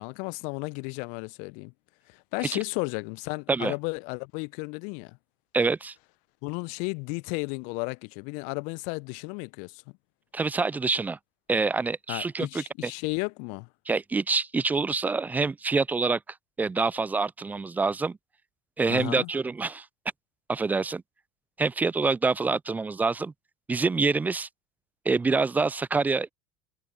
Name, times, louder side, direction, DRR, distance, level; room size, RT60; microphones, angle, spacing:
voice 1, 0.0-1.7 2.1-5.2 6.4-9.8 12.1-13.7 18.9-19.3, left 35 dB, 55° left, 0.9 m, -33 dB
voice 2, 5.5-5.9 10.3-11.2 11.5-12.9 13.9-16.2 16.6-18.2 18.8-19.9 20.5-21.0 21.6-23.3 23.7-24.5 25.1-26.3, right 4 dB, 10° right, 0.3 m, -26 dB
figure-of-eight pair, 75°, 16 cm